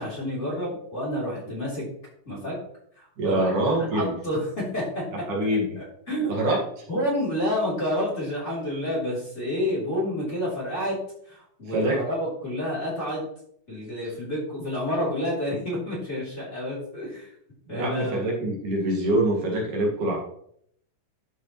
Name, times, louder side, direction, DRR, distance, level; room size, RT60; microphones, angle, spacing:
voice 1, 0.0-1.8 2.3-2.6 3.0-3.5 3.8-5.0 5.4-5.5 5.8-6.3 6.9-11.0 11.3-13.3 13.7-17.3 17.7-18.5, left 1 dB, 20° left, -6 dB, 3.5 m, -29 dB
voice 2, 3.2-4.1 5.3-5.8 6.3-6.8 11.7-12.0 17.7-20.2, right 1 dB, 65° right, -2 dB, 3.3 m, -25 dB
12.5 x 6.8 x 3.1 m, 0.67 s
omnidirectional pair, 3.9 m